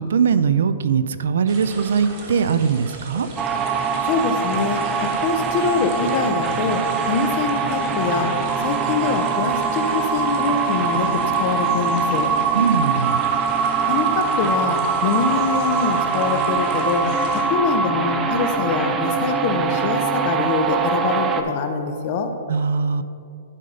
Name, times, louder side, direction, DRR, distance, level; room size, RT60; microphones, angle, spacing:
voice 1, 0.0-3.3 12.5-13.2 22.5-23.0, right 6 dB, 70° right, 13 dB, 0.4 m, -20 dB
sound 1, 1.5-17.4, right 3 dB, 30° right, 1.2 m, -38 dB
sound 2, 3.4-21.4, right 5 dB, 15° right, 0.4 m, -23 dB
voice 2, 4.0-8.3 8.6-12.3 13.9-22.3, left 5 dB, 35° left, 6 dB, 0.6 m, -24 dB
11.0 x 3.9 x 5.4 m, 2.3 s
hypercardioid pair, 170°, 0 cm